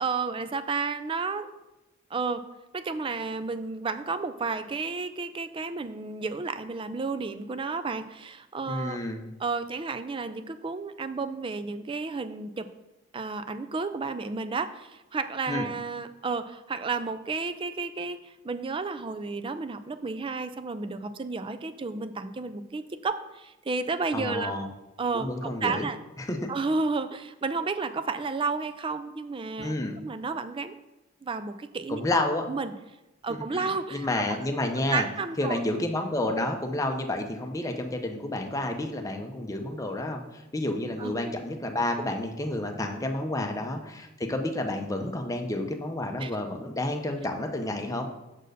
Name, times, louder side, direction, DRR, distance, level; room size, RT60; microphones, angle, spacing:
voice 1, 0.0-1.5 2.1-2.4 2.7-9.0 9.4-12.7 13.1-24.5 25.0-26.0 26.5-30.7 31.2-32.0 32.5-32.7 33.2-34.1 34.9-35.6 41.0-41.2 43.2-43.3 46.2-46.3, right 4 dB, 25° right, 10 dB, 0.4 m, -32 dB
voice 2, 8.7-9.2 15.5-15.7 24.1-24.7 25.1-25.9 26.2-26.4 29.6-29.9 31.9-32.4 33.3-35.1 35.4-48.1, left 1 dB, 15° left, 3 dB, 0.7 m, -30 dB
6.4 x 4.4 x 6.5 m, 0.99 s
head